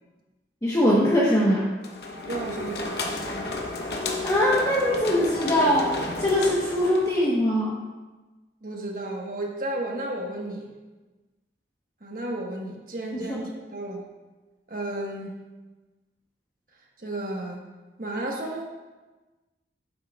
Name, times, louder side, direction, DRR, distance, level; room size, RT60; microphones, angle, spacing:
voice 1, 0.6-1.7 4.2-7.7 13.1-13.4, equal, 20° left, -5 dB, 1.1 m, -22 dB
sound 1, 1.8-7.3, left 2 dB, 65° left, 1.0 m, -32 dB
voice 2, 2.2-3.3 8.6-10.7 12.0-14.0 14.7-15.4 17.0-17.6 18.0-18.6, right 1 dB, 50° right, 0 dB, 1.4 m, -33 dB
11.5 x 9.5 x 2.4 m, 1.2 s
head